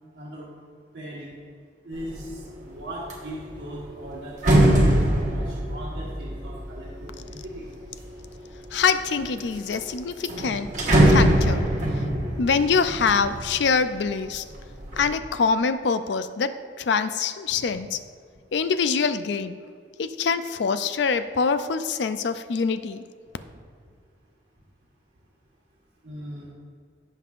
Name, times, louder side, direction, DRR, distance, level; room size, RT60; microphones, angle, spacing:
voice 1, 0.1-0.5 0.9-1.3 1.8-7.6 17.6-17.7 22.7-22.9 26.0-26.5, right 1 dB, 75° right, -7 dB, 1.4 m, -39 dB
sound 1, 2.0-2.4 2.8-8.1 8.7-9.4 9.7-9.8 10.1-14.0 14.4-15.0, right 1 dB, 40° right, 1.5 m, -22 dB
voice 2, 8.7-10.7 11.1-11.7 12.4-14.4 14.9-18.0 18.5-19.7 20.0-23.0, left 5 dB, 70° left, 11 dB, 0.4 m, -24 dB
16.0 x 5.4 x 2.5 m, 2.1 s
head